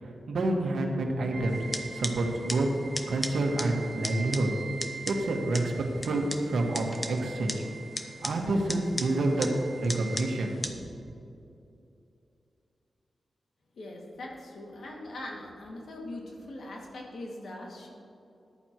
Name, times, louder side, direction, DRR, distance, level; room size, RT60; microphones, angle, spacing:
voice 1, 0.0-2.7 3.1-4.5 5.1-5.7 6.0-7.6 8.2-9.5 9.8-10.7, right 2 dB, 85° right, 1 dB, 1.6 m, -28 dB
sound 1, 1.3-10.5, right 5 dB, 45° right, 1.2 m, -44 dB
sound 2, 1.5-10.7, left 1 dB, 15° left, 0.8 m, -39 dB
voice 2, 13.8-17.9, left 1 dB, 70° left, -1 dB, 2.1 m, -41 dB
14.0 x 11.0 x 3.0 m, 2.7 s
wide cardioid pair, 130°, 0 cm